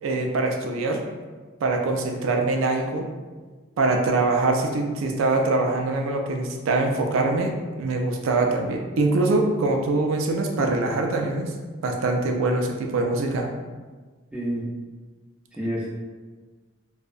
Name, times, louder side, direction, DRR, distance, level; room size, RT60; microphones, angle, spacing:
voice 1, 0.0-1.0 1.6-3.1 3.8-11.5 11.8-13.5, right 2 dB, 75° right, 2 dB, 0.3 m, -23 dB
voice 2, 14.3-14.7 15.5-15.9, equal, 5° right, -5 dB, 0.3 m, -28 dB
2.6 x 2.0 x 2.4 m, 1.4 s
head